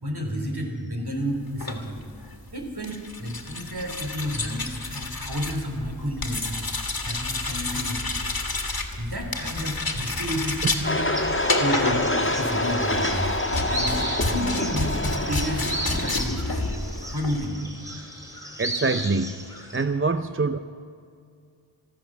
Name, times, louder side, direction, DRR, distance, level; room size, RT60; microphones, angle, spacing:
voice 1, 0.0-2.0 2.5-6.6 7.0-8.2 9.0-11.0 11.6-13.4 13.7-15.7 16.0-16.7 17.1-17.5, equal, 55° right, 2 dB, 3.1 m, -31 dB
sound 1, 1.5-17.5, left 2 dB, 50° left, 1.9 m, -30 dB
sound 2, 10.8-16.2, left 1 dB, 25° left, 1.8 m, -26 dB
sound 3, 11.1-19.8, right 1 dB, 5° right, 3.0 m, -36 dB
voice 2, 18.6-19.4 19.7-20.6, right 3 dB, 30° right, 9 dB, 0.6 m, -24 dB
15.0 x 13.0 x 7.3 m, 2.3 s
wide cardioid pair, 45°, 46 cm